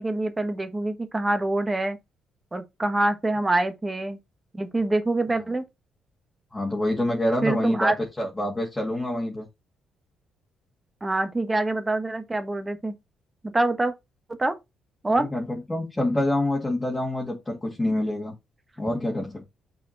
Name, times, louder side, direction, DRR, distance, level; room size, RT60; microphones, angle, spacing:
voice 1, 0.0-2.0 2.5-4.2 4.5-5.6 7.4-8.0 11.0-12.9 13.4-13.9 14.4-14.5 15.0-15.3, right 2 dB, 20° right, 1.4 m, -25 dB
voice 2, 6.5-9.5 15.1-15.4 15.7-18.3 18.8-19.5, left 1 dB, 15° left, 2.0 m, -26 dB
6.1 x 4.2 x 4.1 m
cardioid pair, 90°, 0 cm